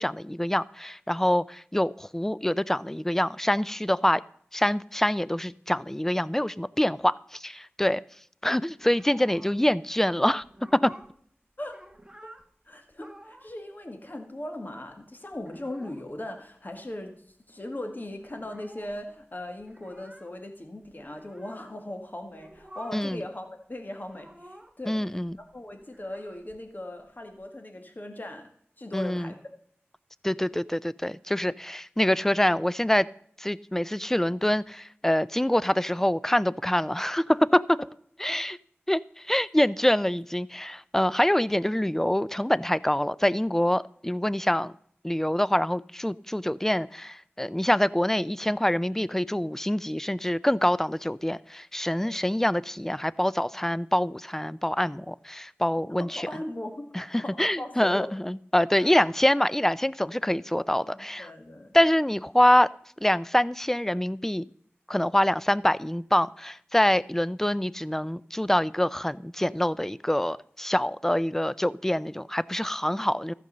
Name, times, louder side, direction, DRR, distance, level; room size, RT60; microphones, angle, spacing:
voice 1, 0.0-4.2 4.5-8.0 8.4-10.4 10.7-10.9 22.9-23.2 24.9-25.3 28.9-29.3 30.2-33.1 33.4-37.8 38.2-38.6 38.9-39.0 39.3-44.7 45.0-56.3 56.9-61.3 61.7-62.7 63.0-64.4 64.9-73.3, left 1 dB, 10° left, 19 dB, 0.4 m, -25 dB
sound 1, 8.8-9.7 10.0-10.1 10.4-11.2 11.5-12.5 12.9-13.6 13.8-13.9 14.1-15.0 15.3-16.1 16.4-16.5 16.7-17.3 17.6-17.7 17.9-21.7 22.2-23.2 23.5-24.9 25.2-27.5, right 1 dB, 15° right, 1.1 m, -51 dB
voice 2, 9.2-9.5 11.6-11.8 12.2-12.3 12.7-17.2 17.5-25.3 25.5-28.5 28.8-29.4 52.0-52.2 53.5-53.7 55.9-56.9 57.2-58.1 58.8-58.9 60.8-61.9, left 1 dB, 45° left, 5 dB, 1.8 m, -39 dB
14.0 x 5.3 x 6.7 m, 0.63 s
wide cardioid pair, 50°, 4 cm